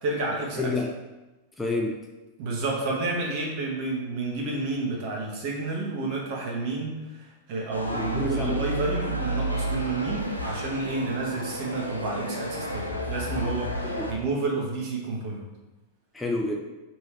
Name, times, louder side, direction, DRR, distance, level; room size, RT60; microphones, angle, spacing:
voice 1, 0.0-0.7 2.4-15.4, right 3 dB, 45° right, -2 dB, 1.1 m, -30 dB
voice 2, 0.6-0.9 1.6-2.1 7.9-8.6 13.8-14.1 16.1-16.7, left 2 dB, 10° left, 1 dB, 0.4 m, -29 dB
sound 1, 7.7-14.1, right 1 dB, 85° left, 0.4 m, -31 dB
3.3 x 3.0 x 4.4 m, 1.1 s
figure-of-eight pair, 90°, 0 cm